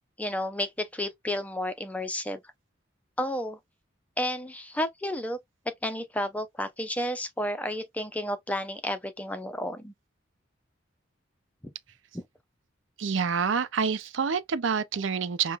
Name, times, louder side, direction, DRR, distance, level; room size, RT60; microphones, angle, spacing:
voice 1, 0.2-2.4 3.2-3.6 4.2-5.4 5.8-9.9 11.6-11.7 12.1-12.2, left 1 dB, 5° left, 0.4 m, -31 dB
voice 2, 13.0-15.6, right 6 dB, 75° right, 0.5 m, -27 dB
5.5 x 2.1 x 2.2 m
head